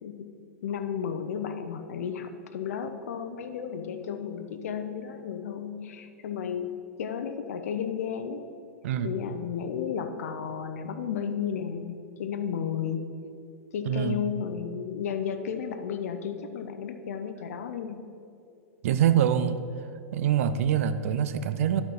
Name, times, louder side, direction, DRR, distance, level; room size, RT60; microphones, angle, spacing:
voice 1, 0.6-8.4 9.0-13.0 13.7-18.0, left 7 dB, 70° left, 8 dB, 0.6 m, -33 dB
voice 2, 13.8-14.2 18.8-19.6 20.1-21.8, right 9 dB, 65° right, 12 dB, 0.5 m, -24 dB
11.5 x 4.6 x 5.4 m, 2.5 s
hypercardioid pair, 105°, 8 cm